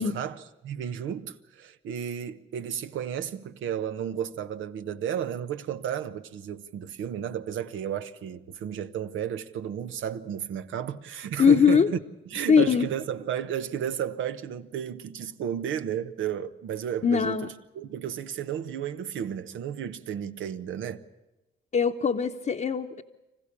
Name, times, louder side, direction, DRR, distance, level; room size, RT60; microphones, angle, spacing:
voice 1, 0.0-12.0 12.3-21.0, right 9 dB, 80° right, 1.1 m, -33 dB
voice 2, 11.4-11.9 12.5-12.9 17.0-17.5 21.7-23.0, left 6 dB, 40° left, 1.0 m, -21 dB
26.0 x 15.5 x 8.5 m
cardioid pair, 90°, 20 cm